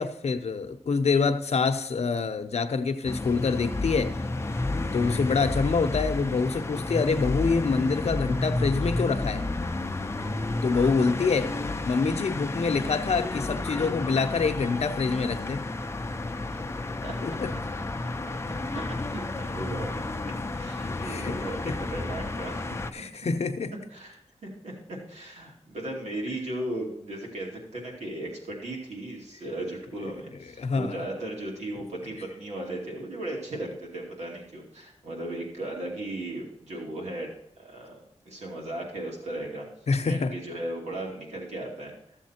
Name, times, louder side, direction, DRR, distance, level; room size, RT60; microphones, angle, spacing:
voice 1, 0.0-4.2 4.9-9.4 10.6-11.5 11.8-15.7 17.2-17.5 21.0-21.4 21.6-21.8 22.9-23.7 30.6-31.0 39.9-40.3, left 4 dB, 70° left, 9 dB, 0.7 m, -26 dB
sound 1, 3.0-22.9, left 2 dB, 25° left, 0.6 m, -31 dB
voice 2, 18.7-22.8 23.9-37.3 37.6-38.0 38.3-39.7 40.0-41.9, right 1 dB, 80° right, -2 dB, 2.6 m, -36 dB
14.0 x 7.2 x 4.4 m, 0.73 s
wide cardioid pair, 120°, 11 cm